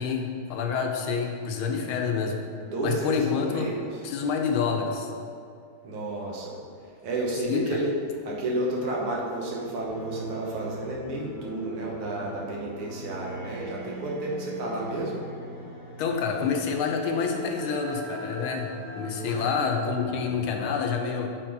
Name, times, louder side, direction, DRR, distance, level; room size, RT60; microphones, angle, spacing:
voice 1, 0.0-2.4 2.8-3.7 4.0-5.1 7.5-7.6 16.0-21.3, left 5 dB, 75° left, 3 dB, 1.4 m, -28 dB
voice 2, 2.6-3.8 5.8-6.6 7.0-7.9 8.3-15.2 19.2-19.5, right 1 dB, 75° right, -3 dB, 2.1 m, -31 dB
sound 1, 9.9-20.6, equal, 10° left, 1.2 m, -40 dB
7.9 x 4.0 x 4.5 m, 2.4 s
omnidirectional pair, 2.4 m